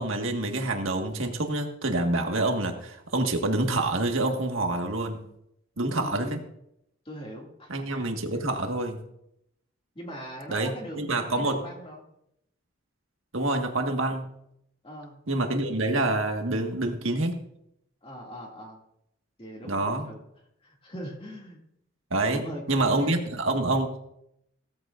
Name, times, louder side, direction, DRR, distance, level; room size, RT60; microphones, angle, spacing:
voice 1, 0.0-5.2 5.8-6.4 7.7-9.0 10.5-11.6 13.3-14.3 15.3-17.3 19.7-20.1 22.1-22.4 22.7-24.0, right 2 dB, 80° right, 4 dB, 1.7 m, -27 dB
voice 2, 5.9-6.4 7.0-8.0 9.9-11.1 11.3-12.1 14.8-15.2 18.0-18.8 19.4-20.2 20.6-21.6 22.3-23.2, equal, 25° left, 0 dB, 2.4 m, -40 dB
17.0 x 14.0 x 2.6 m, 0.78 s
head